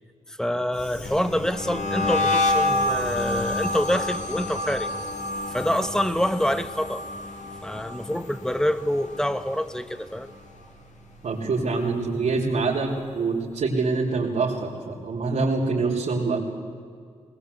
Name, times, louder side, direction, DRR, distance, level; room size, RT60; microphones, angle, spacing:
voice 1, 0.3-4.9 5.5-7.0 7.6-10.3, equal, 5° left, 13 dB, 1.1 m, -26 dB
sound 1, 0.8-9.9 10.2-10.6 11.0-12.5, left 2 dB, 75° left, 3.6 m, -29 dB
voice 2, 11.2-12.9 13.1-16.5, right 3 dB, 75° right, -7 dB, 3.7 m, -25 dB
20.5 x 20.5 x 8.3 m, 2.1 s
wide cardioid pair, 105°, 13 cm